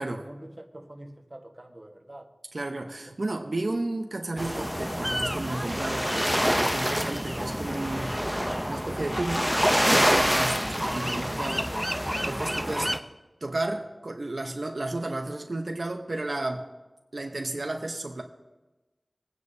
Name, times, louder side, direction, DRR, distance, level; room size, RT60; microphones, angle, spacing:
voice 1, 0.0-2.3 3.1-3.2, right 1 dB, 30° right, 3 dB, 1.3 m, -45 dB
voice 2, 2.5-8.1 8.7-9.5 9.9-11.9 12.2-12.9 13.4-16.7 17.1-18.2, right 2 dB, 65° right, 3 dB, 0.8 m, -33 dB
sound 1, 4.4-13.0, equal, ahead, 0.6 m, -27 dB
21.5 x 9.6 x 2.7 m, 1.1 s
wide cardioid pair, 60°, 0 cm